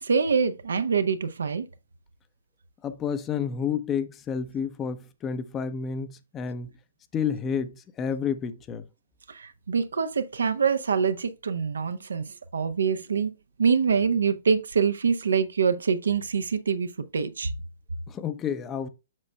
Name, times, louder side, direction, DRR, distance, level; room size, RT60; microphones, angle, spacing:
voice 1, 0.0-1.7 9.3-13.3 13.6-17.5, right 6 dB, 70° right, 0.6 m, -25 dB
voice 2, 2.8-6.8 7.1-8.8 18.1-18.9, left 7 dB, 20° left, 0.6 m, -30 dB
7.5 x 6.1 x 2.2 m
figure-of-eight pair, 120°, 0 cm